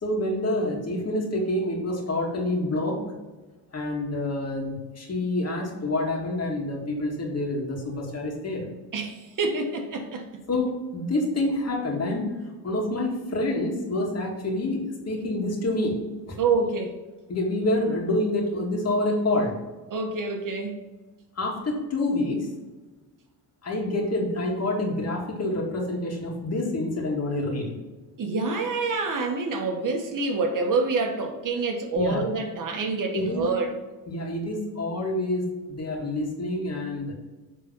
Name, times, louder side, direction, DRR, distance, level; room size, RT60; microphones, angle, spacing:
voice 1, 0.0-3.0 3.7-8.7 10.5-12.3 12.6-16.4 17.3-19.5 21.4-22.5 23.6-27.8 31.9-32.2 33.1-33.4 34.1-37.1, left 1 dB, 40° left, -1 dB, 2.3 m, -27 dB
voice 2, 8.9-10.2 16.4-17.0 19.9-20.8 28.2-33.7, right 3 dB, 55° right, 4 dB, 1.4 m, -27 dB
7.4 x 3.9 x 5.5 m, 1.2 s
cardioid pair, 100°, 38 cm